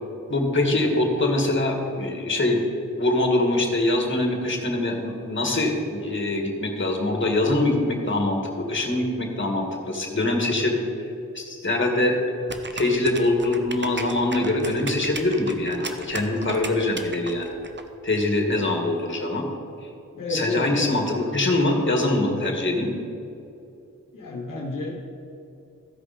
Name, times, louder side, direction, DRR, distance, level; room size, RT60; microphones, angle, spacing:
voice 1, 0.3-2.6 2.9-10.8 11.3-12.2 12.7-17.6 18.0-19.5 20.3-22.9, left 2 dB, 40° left, 2 dB, 1.9 m, -23 dB
sound 1, 12.5-17.8, right 3 dB, 35° right, 0.9 m, -35 dB
voice 2, 20.2-21.0 24.1-25.0, left 2 dB, 80° left, -1 dB, 1.2 m, -30 dB
14.5 x 5.1 x 5.1 m, 2.8 s
cardioid pair, 60°, 31 cm